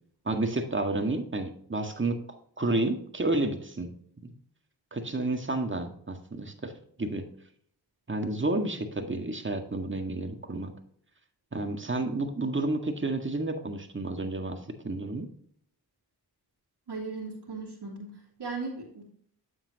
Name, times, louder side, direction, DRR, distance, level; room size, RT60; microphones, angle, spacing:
voice 1, 0.3-2.2 2.6-3.9 4.2-4.3 4.9-6.7 7.0-7.3 8.1-10.7 11.5-15.3, right 2 dB, 30° right, 5 dB, 1.8 m, -30 dB
voice 2, 16.9-18.1 18.4-19.0, right 3 dB, 75° right, -6 dB, 2.6 m, -37 dB
9.0 x 7.3 x 2.9 m, 0.62 s
cardioid pair, 50°, 41 cm